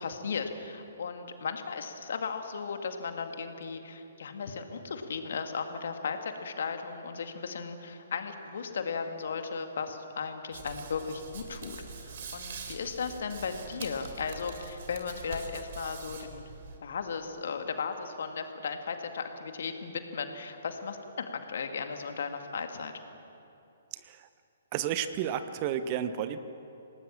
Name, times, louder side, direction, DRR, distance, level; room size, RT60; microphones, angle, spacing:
voice 1, 0.0-16.5 16.8-22.9, left 5 dB, 55° left, 6 dB, 2.2 m, -36 dB
Hands, 10.5-16.8, right 4 dB, 50° right, 3.4 m, -44 dB
voice 2, 23.9-24.3 24.7-26.4, right 9 dB, 35° right, 11 dB, 1.1 m, -32 dB
27.5 x 19.0 x 7.4 m, 2.8 s
figure-of-eight pair, 125°, 0 cm